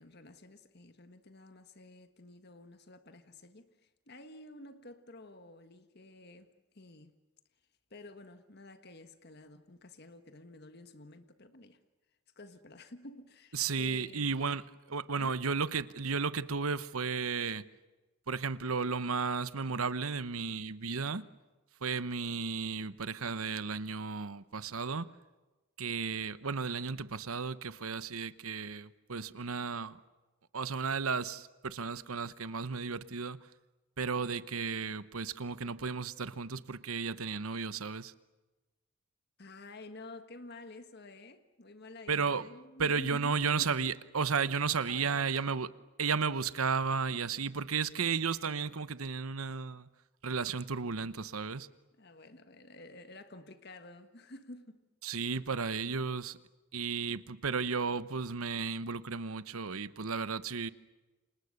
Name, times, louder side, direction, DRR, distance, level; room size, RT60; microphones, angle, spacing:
voice 1, 0.0-7.2 7.9-11.8 12.3-14.3 15.2-15.4 39.4-43.8 44.4-45.3 52.0-54.8, left 2 dB, 50° left, 1.5 m, -51 dB
voice 2, 13.5-17.6 18.3-21.2 21.8-25.1 25.8-30.0 30.5-33.4 34.0-38.1 42.1-42.5 42.8-45.7 46.0-49.9 50.2-51.7 55.0-56.4 56.7-60.7, right 5 dB, 90° right, 1.0 m, -34 dB
30.0 x 26.5 x 6.7 m
head